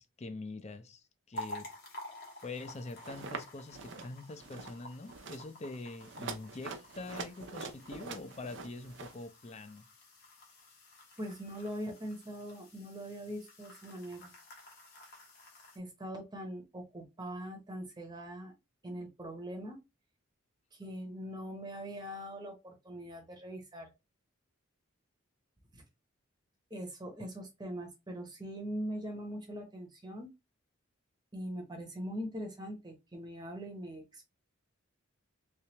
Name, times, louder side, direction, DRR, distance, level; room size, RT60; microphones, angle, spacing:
voice 1, 0.0-1.7 2.4-9.9, left 2 dB, 35° left, 0.5 m, -44 dB
sound 1, 1.3-15.8, left 1 dB, 50° left, 1.2 m, -51 dB
sound 2, 3.0-3.4 3.7-4.1 4.4-4.8 5.1-5.4 6.0-9.2, right 4 dB, 60° right, 0.6 m, -44 dB
voice 2, 11.2-14.3 15.7-18.5 18.8-19.8 20.7-23.9 25.7-25.8 26.7-30.3 31.3-34.2, equal, 20° right, 0.8 m, -42 dB
3.4 x 3.2 x 2.9 m
head